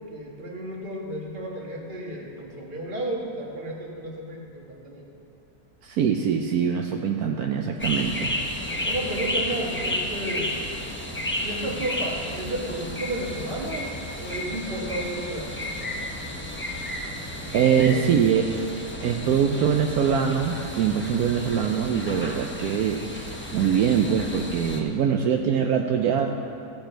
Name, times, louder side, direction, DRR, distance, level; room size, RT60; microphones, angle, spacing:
voice 1, 0.1-5.0 8.7-10.6 11.4-13.9 14.2-15.5 17.5-18.0, right 1 dB, 35° right, -2 dB, 1.6 m, -32 dB
voice 2, 5.8-8.4 17.5-26.3, right 7 dB, 75° right, 3 dB, 1.1 m, -23 dB
sound 1, 7.8-24.8, left 1 dB, 10° left, 0.7 m, -32 dB
16.0 x 7.6 x 4.4 m, 2.7 s
omnidirectional pair, 1.7 m